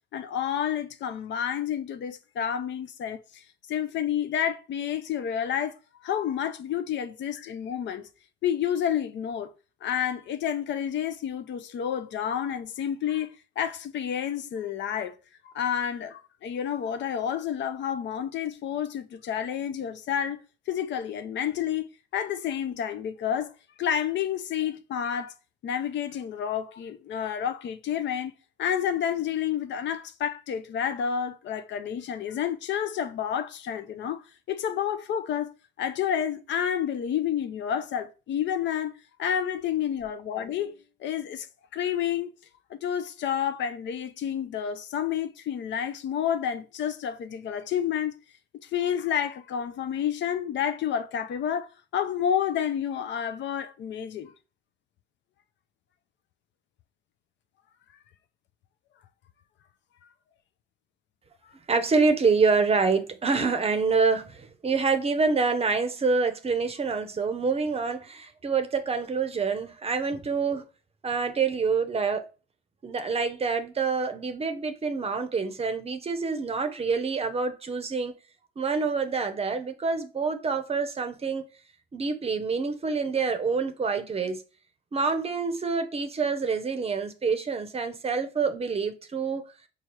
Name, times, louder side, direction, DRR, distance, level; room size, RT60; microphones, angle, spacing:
voice 1, 0.1-5.8 6.0-8.1 8.4-9.5 9.8-15.2 15.4-20.4 20.7-23.5 23.8-25.3 25.6-28.3 28.6-35.5 35.8-38.9 39.2-41.5 41.7-42.3 42.7-48.2 48.6-54.3, left 9 dB, 65° left, 0.5 m, -30 dB
voice 2, 61.7-70.6 71.0-72.2 72.8-78.1 78.6-81.5 81.9-84.4 84.9-89.5, right 4 dB, 30° right, 0.6 m, -26 dB
4.3 x 2.3 x 3.1 m
cardioid pair, 90°, 20 cm